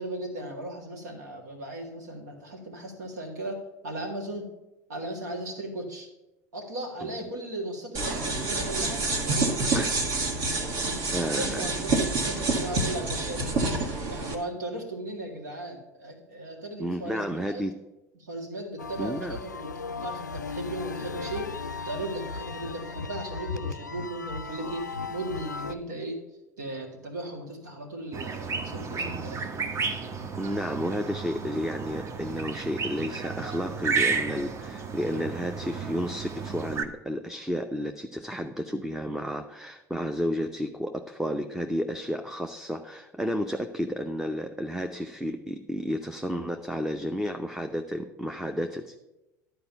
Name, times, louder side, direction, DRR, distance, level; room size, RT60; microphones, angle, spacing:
voice 1, 0.0-4.5 4.9-6.1 6.5-9.9 10.6-17.6 18.2-21.6 21.8-26.2 26.6-29.5, right 1 dB, 75° right, 2 dB, 2.0 m, -37 dB
sound 1, 7.9-14.3, right 3 dB, 50° right, 1.7 m, -28 dB
voice 2, 11.1-11.6 16.8-17.8 19.0-19.4 30.4-49.0, equal, 5° right, 6 dB, 0.6 m, -32 dB
sound 2, 18.8-25.7, left 4 dB, 90° left, 0.4 m, -36 dB
sound 3, 28.1-36.8, right 5 dB, 30° right, 0.9 m, -32 dB
11.5 x 4.6 x 6.9 m, 0.97 s
figure-of-eight pair, 70°, 9 cm